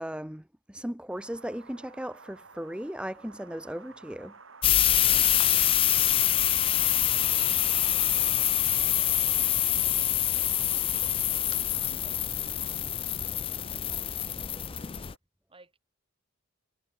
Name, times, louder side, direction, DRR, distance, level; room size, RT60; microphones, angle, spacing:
voice 1, 0.0-4.4, equal, 5° right, 1.0 m, -37 dB
Wind, 1.1-15.2, right 4 dB, 70° right, 2.8 m, -53 dB
sound 1, 4.1-11.2, left 1 dB, 85° left, 7.4 m, -68 dB
sound 2, 4.6-15.1, left 11 dB, 25° left, 0.4 m, -25 dB
voice 2, 4.9-6.9 7.3-9.3 9.6-15.0 15.5-15.8, right 3 dB, 25° right, 6.7 m, -58 dB
head